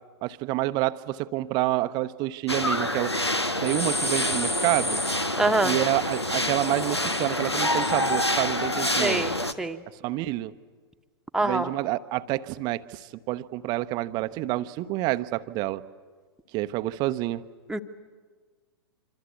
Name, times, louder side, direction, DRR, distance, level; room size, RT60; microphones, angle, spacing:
voice 1, 0.2-3.1 3.6-5.0 5.6-9.2 10.0-10.5 11.4-15.8 16.5-17.4, right 17 dB, 30° right, 13 dB, 0.8 m, -28 dB
sound 1, 2.5-9.5, left 1 dB, 90° left, 1.2 m, -26 dB
voice 2, 5.4-5.8 9.0-9.8 11.3-11.7 17.7-17.8, right 2 dB, 5° right, 4 dB, 1.2 m, -25 dB
26.5 x 25.5 x 8.3 m, 1.5 s
figure-of-eight pair, 105°, 14 cm